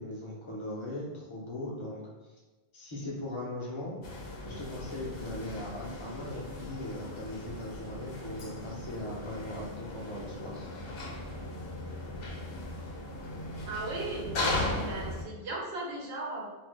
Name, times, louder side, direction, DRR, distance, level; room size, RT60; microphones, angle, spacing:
voice 1, 0.0-2.0 2.7-3.9 4.5-10.6, left 1 dB, 30° left, -4 dB, 0.8 m, -39 dB
sound 1, 4.0-15.2, left 2 dB, 70° left, 0.9 m, -37 dB
voice 2, 13.7-16.5, right 2 dB, 90° right, -3 dB, 1.0 m, -37 dB
2.6 x 2.3 x 3.5 m, 1.2 s
omnidirectional pair, 1.0 m